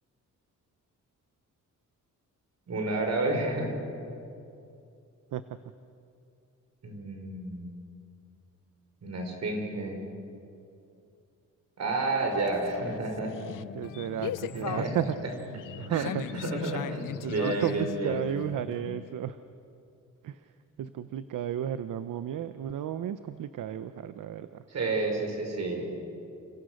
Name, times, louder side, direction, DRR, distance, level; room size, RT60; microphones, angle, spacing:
voice 1, 2.7-3.7 6.8-7.8 9.0-10.0 11.8-13.3 14.2-14.3 14.5-15.0 15.9-18.2 24.7-25.9, right 2 dB, 55° right, 3 dB, 5.8 m, -31 dB
sound 1, 12.3-19.1, left 11 dB, 80° left, 0.7 m, -39 dB
voice 2, 13.7-16.3 16.6-16.7 17.2-19.4 20.2-20.4 20.8-24.6, right 10 dB, 75° right, 12 dB, 0.8 m, -33 dB
30.0 x 26.5 x 6.5 m, 2.6 s
cardioid pair, 125°, 32 cm